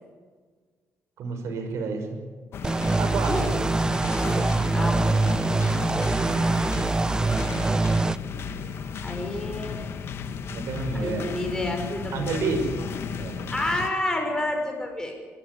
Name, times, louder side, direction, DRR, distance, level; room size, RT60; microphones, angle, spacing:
voice 1, 1.2-2.1 3.0-3.4 10.5-11.5 12.1-12.7 13.1-13.5, right 4 dB, 80° right, 5 dB, 5.8 m, -30 dB
sound 1, 2.5-13.9, left 6 dB, 55° left, 1.4 m, -34 dB
sound 2, 2.6-8.2, right 3 dB, 15° right, 0.5 m, -24 dB
voice 2, 4.7-5.1 9.0-9.9 10.9-12.2 13.5-15.1, left 1 dB, 15° left, 3 dB, 5.5 m, -29 dB
23.5 x 15.0 x 9.7 m, 1.5 s
cardioid pair, 150°, 5 cm